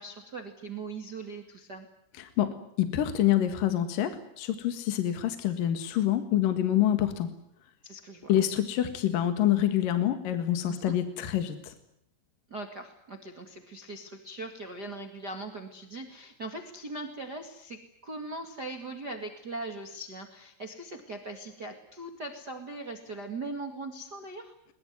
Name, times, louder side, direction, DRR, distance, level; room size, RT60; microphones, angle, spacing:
voice 1, 0.0-1.9 7.8-8.3 10.7-11.0 12.5-24.5, right 2 dB, 80° right, 6 dB, 0.9 m, -40 dB
voice 2, 2.2-7.3 8.3-11.7, left 11 dB, 60° left, 9 dB, 2.5 m, -27 dB
22.5 x 22.0 x 9.5 m, 0.75 s
omnidirectional pair, 6.0 m